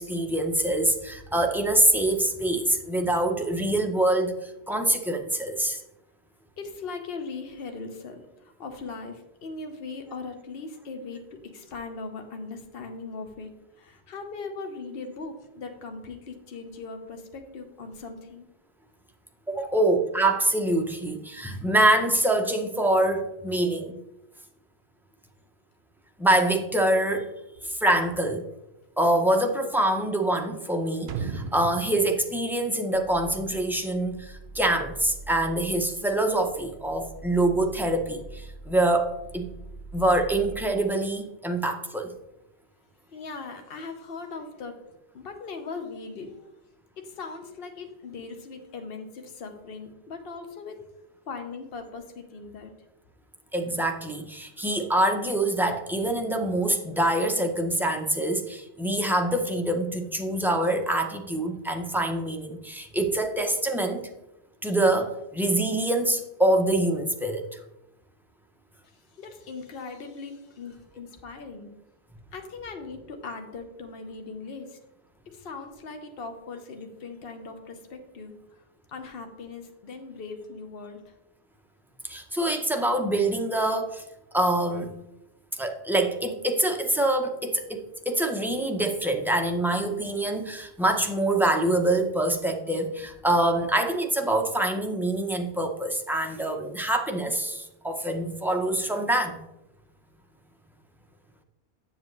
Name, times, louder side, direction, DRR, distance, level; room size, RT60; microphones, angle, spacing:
voice 1, 0.0-5.8 19.5-24.0 26.2-27.3 27.6-28.5 29.0-39.5 39.9-42.1 53.5-64.1 64.6-67.6 82.0-84.0 84.3-84.9 85.5-99.4, right 1 dB, 5° right, 3 dB, 0.4 m, -25 dB
voice 2, 6.6-11.2 11.5-18.5 43.1-46.5 47.0-50.8 51.3-52.7 68.8-71.7 72.3-74.8 75.3-78.6 78.9-81.1, left 4 dB, 60° left, 5 dB, 1.1 m, -39 dB
sound 1, 31.1-33.9 34.2-34.3, right 5 dB, 70° right, 0.8 m, -36 dB
sound 2, 32.9-40.7, right 3 dB, 40° left, 0.6 m, -44 dB
7.4 x 6.7 x 3.2 m, 0.91 s
omnidirectional pair, 1.1 m